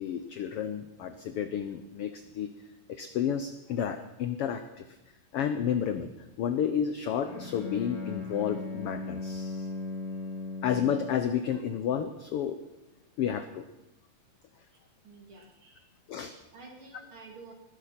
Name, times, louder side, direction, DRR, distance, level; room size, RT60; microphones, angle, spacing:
voice 1, 0.0-2.5 2.9-4.9 5.3-6.1 6.4-9.7 10.6-12.6 13.2-13.6 16.1-16.3, left 8 dB, 80° left, 10 dB, 1.3 m, -31 dB
Bowed string instrument, 7.2-11.3, left 3 dB, 60° left, 4.7 m, -38 dB
voice 2, 15.0-15.9 16.5-17.5, right 3 dB, 45° right, 2 dB, 2.9 m, -50 dB
19.5 x 12.0 x 5.8 m, 0.92 s
omnidirectional pair, 3.6 m